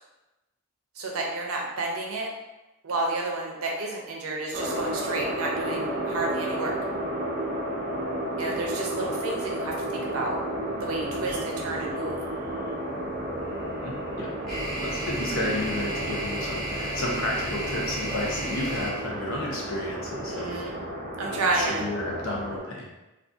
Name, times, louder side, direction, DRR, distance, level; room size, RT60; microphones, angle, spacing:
voice 1, 1.0-2.3 2.8-6.7 8.4-10.4 10.8-12.2 20.3-20.8 21.2-21.9, right 2 dB, 85° right, 0 dB, 0.6 m, -30 dB
sound 1, 4.5-22.6, right 1 dB, 40° right, 0.4 m, -32 dB
sound 2, 11.2-11.4 13.5-20.5, right 1 dB, ahead, 0.7 m, -34 dB
voice 2, 13.8-14.3 14.8-20.6 21.2-22.9, left 1 dB, 70° left, -2 dB, 0.6 m, -32 dB
2.6 x 2.4 x 2.3 m, 1.0 s
head